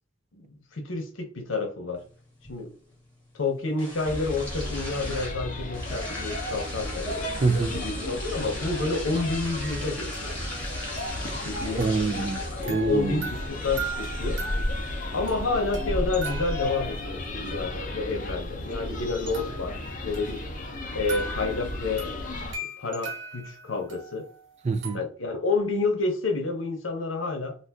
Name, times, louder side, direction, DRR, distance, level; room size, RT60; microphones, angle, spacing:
voice 1, 0.3-2.0 2.5-2.7 3.3-7.3 7.7-10.4 11.4-11.9 12.6-14.4 15.1-20.4 20.9-22.0 22.6-24.3 24.9-27.6, left 3 dB, 90° left, 0.8 m, -29 dB
sound 1, 1.9-19.9, left 1 dB, 10° left, 1.2 m, -42 dB
sound 2, 4.0-22.5, left 1 dB, 40° left, 0.6 m, -33 dB
voice 2, 7.4-7.8 11.8-13.3 24.6-25.0, right 4 dB, 35° right, 0.3 m, -26 dB
sound 3, 9.6-12.3 12.6-17.3 19.3-25.0, right 2 dB, 80° right, 1.3 m, -40 dB
2.5 x 2.5 x 3.4 m
head